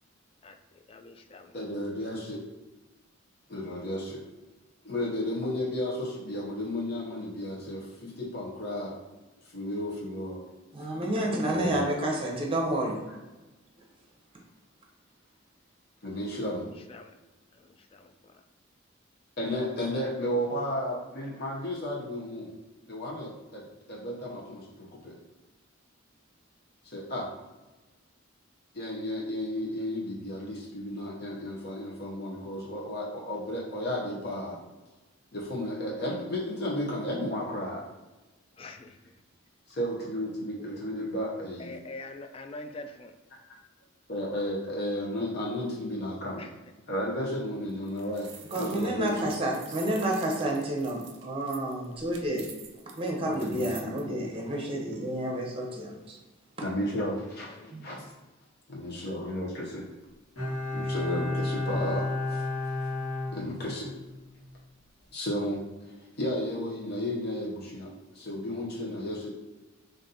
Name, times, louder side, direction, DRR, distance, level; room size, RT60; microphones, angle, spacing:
voice 1, 0.4-1.6 16.7-17.2 17.5-18.4 38.6-39.1 40.6-40.7 41.6-43.1 46.4-46.5 57.5-58.1, left 2 dB, 30° left, 6 dB, 0.3 m, -45 dB
voice 2, 1.5-2.4 3.5-4.2 4.8-9.0 9.5-10.4 11.5-11.8 16.0-16.7 19.4-22.5 22.9-23.6 23.9-25.2 26.8-27.3 28.7-34.6 35.3-37.8 39.7-41.7 44.1-46.4 46.9-48.3 48.6-49.3 53.2-53.8 56.6-57.6 57.8-58.0 58.7-59.9 60.7-62.4 63.3-63.9 65.1-69.3, left 1 dB, 55° left, -4 dB, 0.8 m, -33 dB
voice 3, 10.7-13.0 48.5-52.4 52.9-56.2 57.7-58.0, right 1 dB, 30° right, 0 dB, 0.8 m, -30 dB
sound 1, 47.7-54.0, right 7 dB, 65° right, 0.6 m, -47 dB
Bowed string instrument, 60.4-64.1 64.4-64.5, left 2 dB, 70° left, 1.4 m, -32 dB
4.0 x 2.6 x 3.9 m, 1.1 s
head